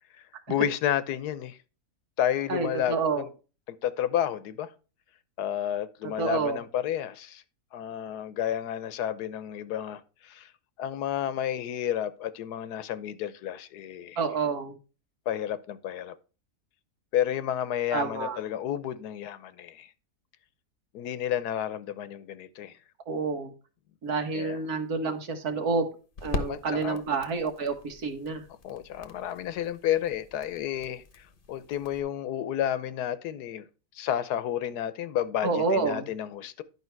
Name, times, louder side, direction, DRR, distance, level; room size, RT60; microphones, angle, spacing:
voice 1, 0.5-1.6 2.2-3.3 3.7-4.7 5.4-7.4 7.7-10.5 10.8-14.2 15.3-16.1 17.1-19.9 20.9-22.7 24.3-24.6 26.3-27.0 28.6-33.6 33.9-36.6, left 10 dB, 85° left, 1.3 m, -31 dB
voice 2, 2.5-3.3 6.2-6.6 14.2-14.8 17.9-18.4 23.1-23.5 24.0-25.9 26.2-28.4 35.4-36.1, right 4 dB, 75° right, 1.8 m, -28 dB
sound 1, 24.1-32.0, left 3 dB, 40° left, 1.0 m, -42 dB
11.0 x 5.3 x 4.5 m
omnidirectional pair, 1.6 m